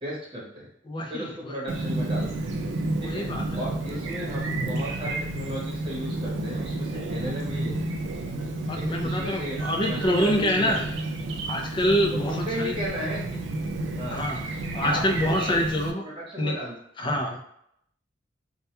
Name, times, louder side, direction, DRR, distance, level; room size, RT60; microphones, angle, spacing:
voice 1, 0.0-0.7 1.1-2.5 3.0-3.3 3.5-7.7 8.8-9.6 9.8-10.7 12.3-13.4 14.0-14.2 14.8-15.6 16.0-16.7 17.0-17.2, equal, 25° right, -5 dB, 0.9 m, -34 dB
voice 2, 0.9-1.6 3.0-3.6 8.7-10.8 11.5-12.8 14.1-16.0 16.4-16.6 17.0-17.4, equal, 25° left, 2 dB, 0.3 m, -26 dB
Chirp tweet, 1.7-15.9, right 2 dB, 70° right, 0.3 m, -31 dB
2.2 x 2.2 x 2.8 m, 0.73 s
head